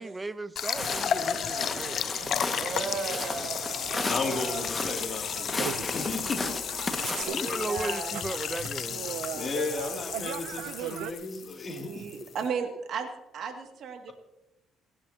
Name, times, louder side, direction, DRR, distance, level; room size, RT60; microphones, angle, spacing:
voice 1, 0.0-2.1 7.2-9.3, right 2 dB, 20° right, 0.7 m, -36 dB
sound 1, 0.6-12.5, left 8 dB, 60° left, 0.6 m, -34 dB
sound 2, 0.7-11.1, right 12 dB, 85° right, 0.6 m, -40 dB
Walk footsteps, 0.8-7.2, left 2 dB, 25° left, 1.8 m, -35 dB
voice 2, 2.5-4.7 7.0-8.2 11.7-13.1 13.3-14.1, right 5 dB, 65° right, 2.3 m, -35 dB
voice 3, 4.0-6.8 7.2-7.5 9.3-12.0, left 3 dB, 40° left, 2.7 m, -35 dB
29.0 x 10.5 x 2.9 m
supercardioid pair, 75°, 0 cm